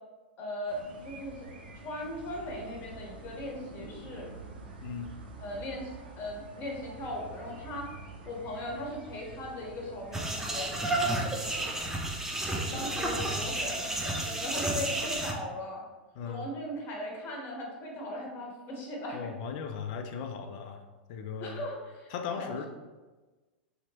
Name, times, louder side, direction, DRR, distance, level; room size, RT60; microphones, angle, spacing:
voice 1, 0.4-0.8 1.0-1.4 1.8-4.3 5.4-7.9 8.3-11.7 12.5-15.8 16.2-19.3 21.4-22.1 22.4-22.5, left 1 dB, 35° left, -1 dB, 1.0 m, -38 dB
sound 1, 0.7-13.8, right 3 dB, 70° right, 0.6 m, -47 dB
voice 2, 4.8-5.1 12.7-13.6 16.1-16.5 19.1-20.8 21.1-21.6 22.1-22.7, left 6 dB, 55° left, 6 dB, 0.4 m, -38 dB
sound 2, 10.1-15.3, right 2 dB, 10° right, 0.5 m, -31 dB
3.3 x 2.9 x 2.9 m, 1.2 s
figure-of-eight pair, 95°, 5 cm